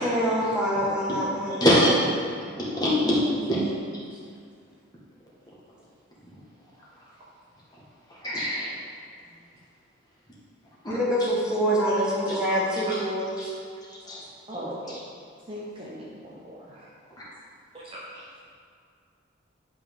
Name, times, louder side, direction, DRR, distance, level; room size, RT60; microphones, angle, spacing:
voice 1, 0.0-1.7 10.9-13.5, equal, 5° right, -6 dB, 1.4 m, -25 dB
voice 2, 1.6-2.0 2.6-3.7 8.2-8.7 10.8-11.0 13.4-13.5 14.1-14.2, equal, 20° left, -7 dB, 1.6 m, -22 dB
voice 3, 2.5-3.2 4.1-4.2 12.5-12.6 12.9-13.0 14.5-15.0 15.5-16.9 17.8-18.0, equal, 25° right, -5 dB, 0.9 m, -39 dB
10.5 x 5.5 x 3.8 m, 2.2 s
head